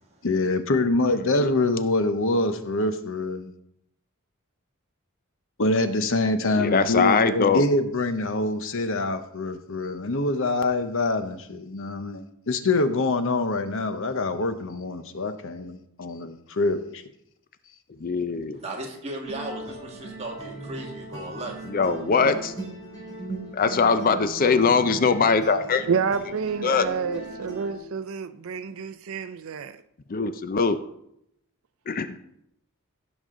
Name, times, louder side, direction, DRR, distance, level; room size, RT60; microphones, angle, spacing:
voice 1, 0.2-3.5 5.6-17.0, left 2 dB, 65° left, 0.9 m, -25 dB
voice 2, 6.6-7.7 18.0-18.6 21.7-22.6 23.5-25.9 26.6-26.9 30.1-30.8 31.9-32.2, left 5 dB, 40° left, 0.5 m, -22 dB
voice 3, 18.6-21.5, right 1 dB, 30° right, 1.9 m, -36 dB
sound 1, 19.2-27.8, right 2 dB, 15° left, 4.3 m, -38 dB
voice 4, 25.9-29.8, right 5 dB, 65° right, 0.5 m, -29 dB
16.0 x 6.3 x 3.7 m
head